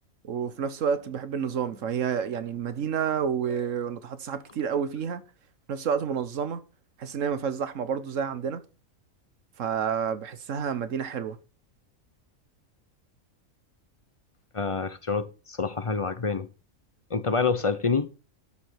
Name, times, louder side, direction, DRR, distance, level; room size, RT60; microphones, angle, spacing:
voice 1, 0.2-5.2 5.7-6.6 7.0-8.6 9.6-11.4, right 7 dB, 70° right, 1.3 m, -29 dB
voice 2, 14.5-16.5 17.1-18.1, left 4 dB, 30° left, 0.6 m, -27 dB
12.5 x 5.0 x 5.9 m
omnidirectional pair, 1.4 m